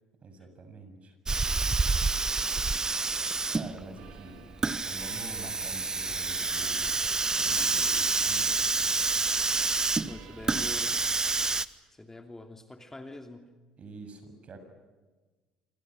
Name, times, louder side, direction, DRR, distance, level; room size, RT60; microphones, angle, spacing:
voice 1, 0.2-1.2 3.5-4.5 4.8-6.9 7.4-8.8 13.8-14.6, right 3 dB, 40° right, 8 dB, 7.1 m, -46 dB
Hiss, 1.3-11.6, right 3 dB, 20° right, 1.2 m, -28 dB
sound 1, 2.8-10.8, right 10 dB, 70° right, 2.5 m, -55 dB
voice 2, 10.1-11.1 11.9-13.5, left 2 dB, 15° left, 5 dB, 2.7 m, -45 dB
27.0 x 26.0 x 6.4 m, 1.3 s
hypercardioid pair, 60°, 3 cm